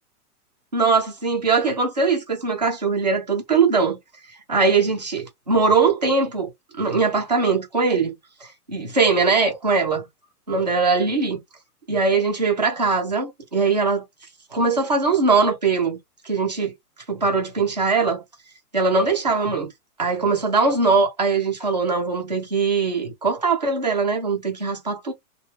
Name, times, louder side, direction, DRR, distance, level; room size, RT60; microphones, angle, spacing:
voice 1, 0.7-4.0 4.5-6.5 6.8-8.1 8.4-10.1 10.5-11.4 11.9-14.0 14.5-16.0 16.2-16.7 17.1-18.2 18.7-19.7 20.0-25.1, right 4 dB, 30° right, 0.4 m, -21 dB
3.1 x 2.2 x 3.2 m
hypercardioid pair, 170°, 48 cm